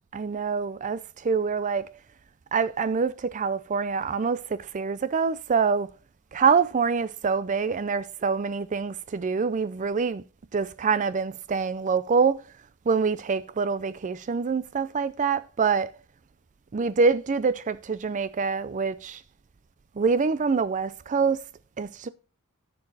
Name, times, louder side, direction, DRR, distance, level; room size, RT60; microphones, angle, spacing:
voice 1, 0.1-1.9 2.5-5.9 6.3-10.2 10.5-12.4 12.9-15.9 16.7-19.2 20.0-21.4 21.8-22.1, right 5 dB, 35° right, 0.4 m, -25 dB
10.5 x 6.8 x 4.0 m
head